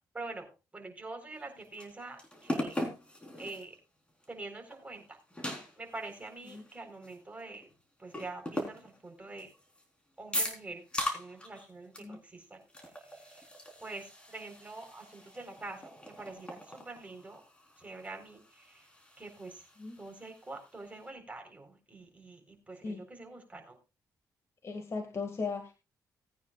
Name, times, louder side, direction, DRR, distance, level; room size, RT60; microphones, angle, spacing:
voice 1, 0.0-2.8 3.4-3.8 4.3-7.7 8.0-9.5 10.2-10.8 11.1-13.5 13.8-17.4 17.8-18.9 19.2-19.7 20.0-23.8, right 2 dB, 20° right, 4 dB, 4.2 m, -46 dB
sound 1, 1.3-3.8 4.2-4.3 4.7-7.7 8.1-9.8 10.3-11.7 11.9-12.2 12.4-21.1, left 1 dB, 15° left, 4.1 m, -41 dB
voice 2, 24.6-25.7, left 4 dB, 45° left, 4 dB, 2.0 m, -37 dB
19.0 x 9.4 x 2.4 m, 0.28 s
cardioid pair, 90°, 7 cm